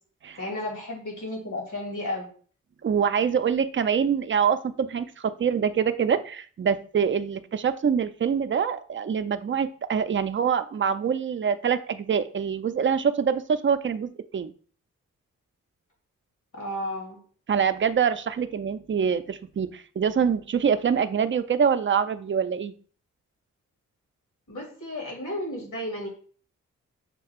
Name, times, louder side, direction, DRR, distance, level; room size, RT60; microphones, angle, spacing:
voice 1, 0.4-2.3 16.5-17.2 24.5-26.1, left 1 dB, 70° left, -1 dB, 2.3 m, -33 dB
voice 2, 2.8-14.5 17.5-22.7, right 7 dB, 40° right, 11 dB, 0.5 m, -25 dB
6.5 x 2.3 x 3.5 m, 0.43 s
cardioid pair, 45°, 32 cm